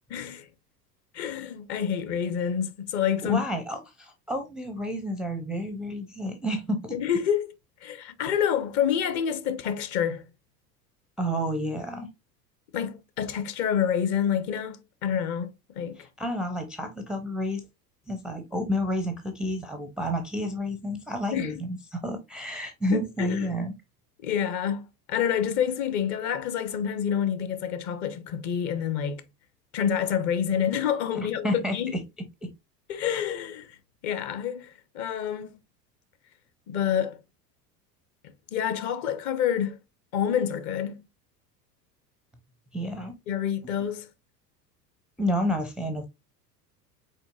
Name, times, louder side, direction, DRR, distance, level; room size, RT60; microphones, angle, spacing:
voice 1, 0.1-0.5 1.1-3.4 6.9-7.5 7.8-10.3 12.7-15.5 15.8-16.0 21.3-21.6 22.9-23.5 24.2-29.2 29.7-32.0 32.9-33.8 34.0-35.5 36.7-37.2 38.5-39.8 40.1-41.0 43.3-44.1, left 8 dB, 35° left, 0.7 m, -28 dB
voice 2, 3.2-7.0 11.2-12.1 16.0-17.6 18.1-23.7 31.4-32.0 32.4-32.5 42.7-43.1 45.2-46.1, equal, ahead, 0.5 m, -30 dB
5.2 x 4.0 x 2.3 m
figure-of-eight pair, 80°, 50 cm